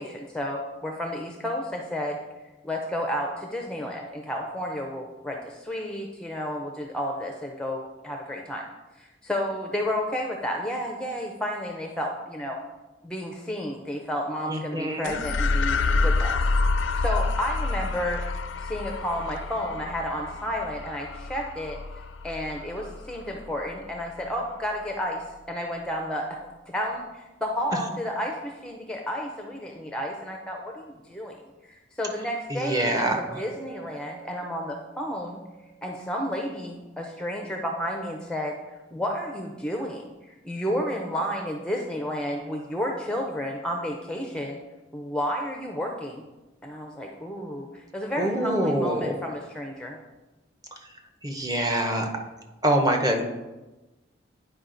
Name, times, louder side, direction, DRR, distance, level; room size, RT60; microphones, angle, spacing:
voice 1, 0.0-2.2 2.6-8.6 9.0-12.6 13.0-16.5 16.9-18.2 18.6-21.8 22.2-26.3 26.7-31.4 31.6-35.4 35.8-38.6 38.9-44.6 44.9-46.2 46.6-50.0, equal, 5° left, 2 dB, 0.5 m, -31 dB
voice 2, 14.5-15.2 32.5-33.4 48.2-49.2 51.2-52.1 52.6-53.2, right 1 dB, 20° right, 3 dB, 0.8 m, -25 dB
sound 1, 15.0-23.7, left 3 dB, 85° left, 0.5 m, -28 dB
Chink clink, 32.6-36.8, right 11 dB, 60° right, 1.6 m, -46 dB
9.6 x 4.9 x 3.8 m, 1.1 s
head